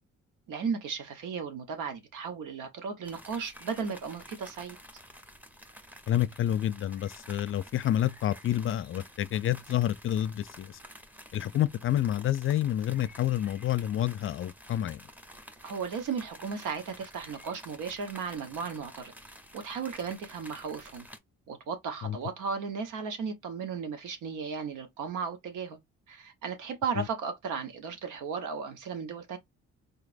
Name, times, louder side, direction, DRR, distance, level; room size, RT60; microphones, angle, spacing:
voice 1, 0.5-4.8 15.6-19.1 19.5-21.1 21.5-25.8 26.1-29.4, right 6 dB, 85° right, 1.1 m, -35 dB
sound 1, 3.0-21.2, equal, 5° right, 0.8 m, -51 dB
voice 2, 6.1-10.8 11.3-15.0 22.0-22.2 27.0-27.1, left 12 dB, 45° left, 0.4 m, -29 dB
4.2 x 2.9 x 2.5 m
cardioid pair, 90°, 30 cm